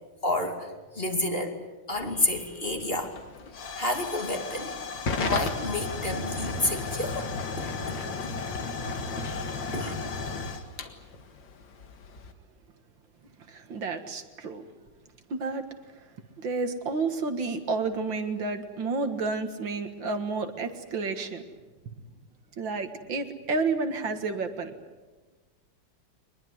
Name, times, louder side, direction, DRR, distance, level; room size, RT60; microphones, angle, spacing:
voice 1, 0.2-0.7 0.9-1.6 1.9-3.1 3.8-4.7 5.2-7.3 7.6-8.0 9.2-9.4 9.7-9.9, left 2 dB, 25° left, 4 dB, 2.7 m, -30 dB
Hiss / Fire / Tick, 1.9-12.3, left 3 dB, 65° left, 2.5 m, -34 dB
voice 2, 13.5-14.6 15.3-15.6 16.4-21.4 22.6-24.7, right 3 dB, 65° right, 7 dB, 2.4 m, -30 dB
23.5 x 21.0 x 9.5 m, 1.3 s
omnidirectional pair, 2.2 m